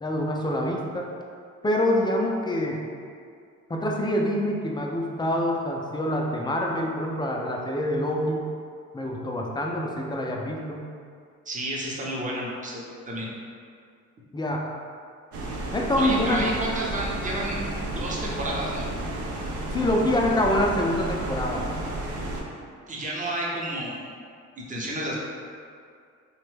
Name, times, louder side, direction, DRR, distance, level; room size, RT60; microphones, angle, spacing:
voice 1, 0.0-1.1 1.6-2.8 3.7-8.5 8.9-10.8 14.3-14.6 15.7-16.5 19.7-21.6, left 1 dB, 15° left, -1 dB, 0.3 m, -26 dB
voice 2, 11.5-13.3 16.0-17.6 18.0-18.8 22.9-24.1 24.6-25.2, right 1 dB, 25° right, -4 dB, 0.6 m, -31 dB
sound 1, 15.3-22.4, right 1 dB, 75° right, 0.5 m, -32 dB
3.0 x 2.2 x 3.2 m, 2.2 s
cardioid pair, 90°, 30 cm